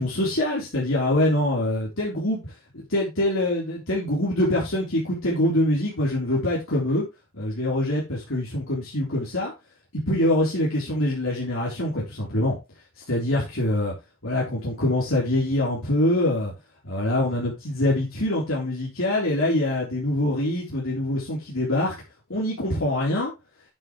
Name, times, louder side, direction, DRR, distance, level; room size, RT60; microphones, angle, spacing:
voice 1, 0.0-2.4 2.7-7.0 7.4-9.5 9.9-12.6 13.1-13.9 14.2-16.5 16.8-21.9 22.3-23.3, left 1 dB, 75° left, 3.7 m, -24 dB
11.0 x 7.3 x 3.2 m
head